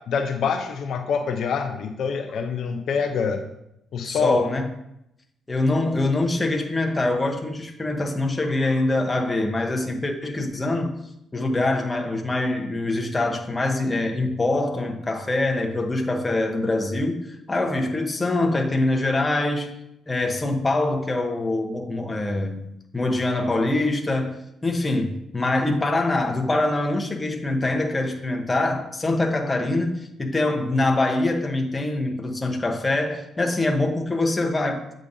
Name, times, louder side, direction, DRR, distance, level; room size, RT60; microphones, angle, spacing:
voice 1, 0.1-3.4 3.9-4.4, left 6 dB, 70° left, 0.6 m, -25 dB
voice 2, 4.0-4.7 5.5-11.0 11.3-19.7 20.1-34.9, left 2 dB, 20° left, 0.9 m, -24 dB
8.3 x 5.0 x 2.7 m
cardioid pair, 90°, 0 cm